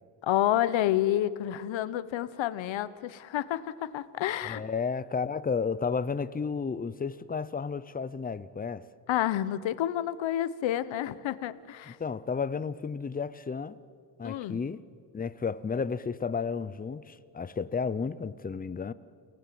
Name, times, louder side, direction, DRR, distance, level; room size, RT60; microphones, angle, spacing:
voice 1, 0.2-4.6 9.1-12.0 14.2-14.6, left 12 dB, 80° left, 1.1 m, -29 dB
voice 2, 4.4-8.9 11.9-13.8 14.2-14.8 15.1-18.9, left 5 dB, 20° left, 0.7 m, -32 dB
29.5 x 18.0 x 7.7 m
cardioid pair, 135°, 45 cm